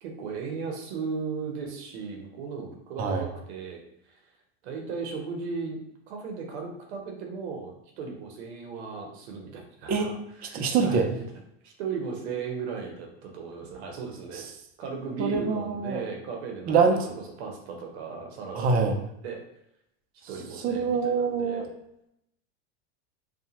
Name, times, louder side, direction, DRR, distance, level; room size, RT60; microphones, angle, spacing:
voice 1, 0.0-3.8 4.1-4.2 4.6-5.8 6.1-10.1 10.4-11.3 11.6-14.5 14.8-18.9 19.2-19.4 20.3-21.6, right 5 dB, 70° right, 2 dB, 0.8 m, -36 dB
voice 2, 10.5-11.1 14.3-14.4 15.2-16.0 16.7-17.0 18.5-19.0 20.6-21.7, right 5 dB, 25° right, 3 dB, 0.4 m, -24 dB
2.7 x 2.2 x 2.8 m, 0.78 s
supercardioid pair, 115°, 34 cm